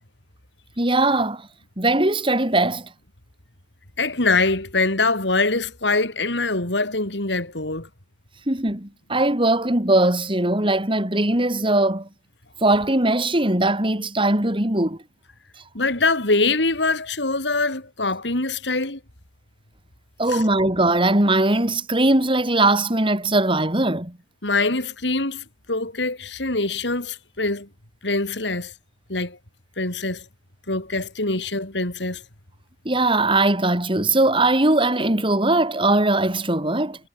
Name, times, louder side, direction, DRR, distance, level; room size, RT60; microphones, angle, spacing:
voice 1, 0.8-1.5 1.8-2.9 8.5-12.1 12.6-15.0 20.2-24.2 32.8-37.0, right 2 dB, 30° right, 4.6 m, -20 dB
voice 2, 4.0-7.9 15.7-19.0 20.3-20.4 24.4-27.7 28.0-28.7 29.1-29.4 29.8-30.2 30.7-32.2, left 3 dB, 85° left, 4.4 m, -23 dB
head